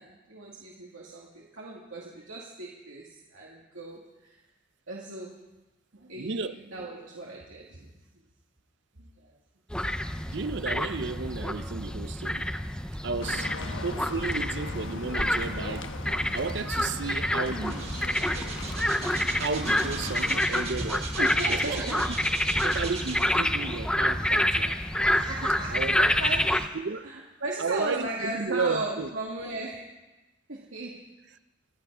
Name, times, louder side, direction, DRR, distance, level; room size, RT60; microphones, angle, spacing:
voice 1, 0.0-4.4 4.9-5.4 5.9-8.2 9.0-9.4 9.9-10.4 19.6-19.8 21.2-22.0 25.0-26.6 27.0-29.8 30.5-31.0, right 2 dB, 90° right, 2.3 m, -37 dB
voice 2, 6.2-6.5 10.3-12.5 13.0-13.5 13.8-15.9 16.3-17.9 19.3-21.1 21.5-22.0 22.6-24.8 25.7-26.2 26.7-27.1 27.6-29.1, right 4 dB, 65° right, 0.6 m, -33 dB
sound 1, 9.7-26.7, left 1 dB, 5° left, 0.5 m, -28 dB
sound 2, 13.2-20.4, left 3 dB, 80° left, 1.1 m, -40 dB
sound 3, 17.6-23.6 24.2-24.3, right 4 dB, 30° right, 1.7 m, -39 dB
26.5 x 9.2 x 5.6 m
head